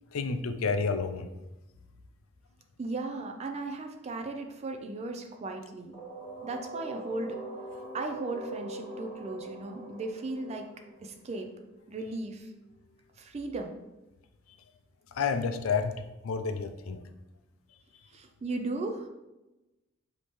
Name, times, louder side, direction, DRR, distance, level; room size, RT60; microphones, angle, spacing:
voice 1, 0.1-1.3 15.1-17.0, left 5 dB, 85° left, 8 dB, 0.4 m, -30 dB
voice 2, 2.8-6.0 6.4-7.4 7.9-10.7 11.0-11.5 11.9-12.5 13.2-13.8 18.1-19.1, right 2 dB, 30° right, 4 dB, 0.4 m, -36 dB
sound 1, 5.9-11.7, right 1 dB, 25° left, 1.5 m, -42 dB
5.2 x 2.8 x 3.1 m, 1.0 s
head